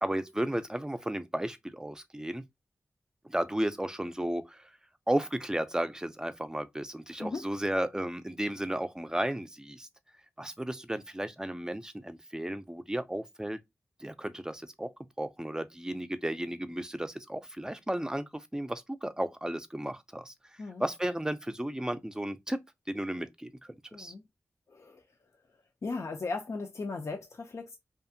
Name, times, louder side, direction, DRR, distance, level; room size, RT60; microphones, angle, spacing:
voice 1, 0.0-2.4 3.3-4.7 5.1-9.9 10.4-13.6 14.0-14.9 15.2-20.3 20.8-22.6 22.9-23.5 24.0-24.1, right 1 dB, 10° right, 0.4 m, -34 dB
voice 2, 23.9-24.2 24.7-25.0 25.8-27.8, left 3 dB, 65° left, 0.5 m, -37 dB
2.6 x 2.4 x 2.5 m
cardioid pair, 45°, 5 cm